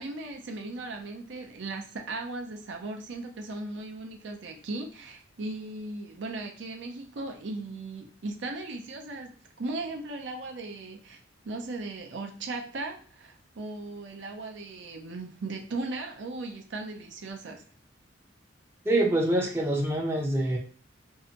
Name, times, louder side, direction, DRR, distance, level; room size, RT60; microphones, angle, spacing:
voice 1, 0.0-9.3 9.6-17.6, right 2 dB, 65° right, 3 dB, 0.5 m, -37 dB
voice 2, 18.8-20.6, right 1 dB, 10° right, -2 dB, 0.5 m, -25 dB
2.6 x 2.1 x 2.8 m, 0.43 s
head